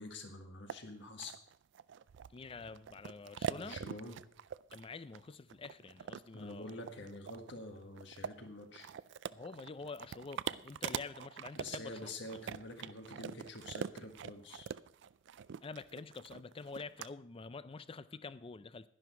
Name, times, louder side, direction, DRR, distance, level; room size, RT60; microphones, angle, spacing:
voice 1, 0.0-1.3 3.5-4.2 6.3-8.9 11.6-14.7, left 2 dB, 65° left, 1.7 m, -47 dB
sound 1, 0.7-0.8 1.2-17.1, right 7 dB, 60° right, 0.3 m, -44 dB
voice 2, 2.3-3.8 4.7-6.7 9.3-12.1 15.6-18.9, left 4 dB, 25° left, 0.4 m, -47 dB
11.0 x 11.0 x 4.5 m
head